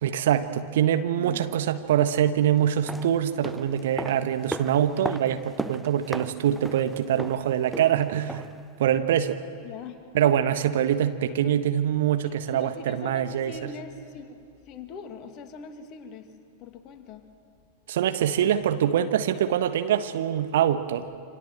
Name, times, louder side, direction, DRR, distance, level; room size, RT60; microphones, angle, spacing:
voice 1, 0.0-8.5 8.8-9.4 10.1-13.5 17.9-21.1, right 10 dB, 55° right, 9 dB, 1.4 m, -24 dB
voice 2, 1.2-1.5 9.6-10.3 11.3-11.5 12.2-16.3 16.6-17.2, left 5 dB, 35° left, 6 dB, 2.3 m, -42 dB
sound 1, 2.7-8.7 8.9-9.0, right 1 dB, 5° right, 0.6 m, -37 dB
27.5 x 26.0 x 7.7 m, 2.3 s
figure-of-eight pair, 90°, 0 cm